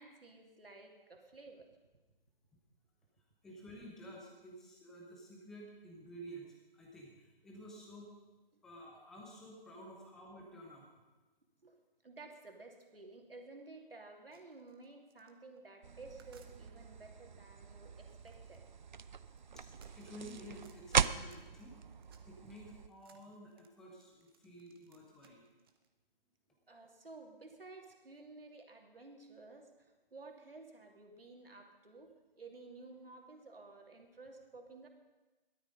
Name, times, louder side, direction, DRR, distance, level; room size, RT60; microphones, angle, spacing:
voice 1, 0.0-1.7 11.6-18.6 26.7-34.9, right 3 dB, 70° right, 2 dB, 2.8 m, -54 dB
voice 2, 3.4-8.1 8.6-10.9 19.5-21.7 22.2-25.4, right 1 dB, ahead, -1 dB, 0.6 m, -52 dB
sound 1, 14.3-17.0 17.9-22.5 22.8-25.9, right 7 dB, 25° right, 1.0 m, -67 dB
sound 2, 15.8-22.9, right 6 dB, 50° right, 0.5 m, -39 dB
17.0 x 12.5 x 5.3 m, 1.2 s
figure-of-eight pair, 145°, 30 cm